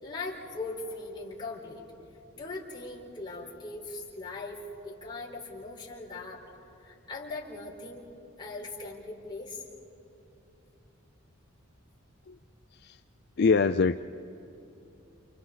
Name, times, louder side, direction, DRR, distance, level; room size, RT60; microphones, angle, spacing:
voice 1, 0.0-1.8 2.3-6.4 6.8-8.0 8.4-9.6, left 3 dB, 20° left, -5 dB, 4.3 m, -40 dB
voice 2, 13.4-14.0, left 4 dB, 50° left, 9 dB, 0.4 m, -24 dB
30.0 x 29.0 x 4.0 m, 2.9 s
head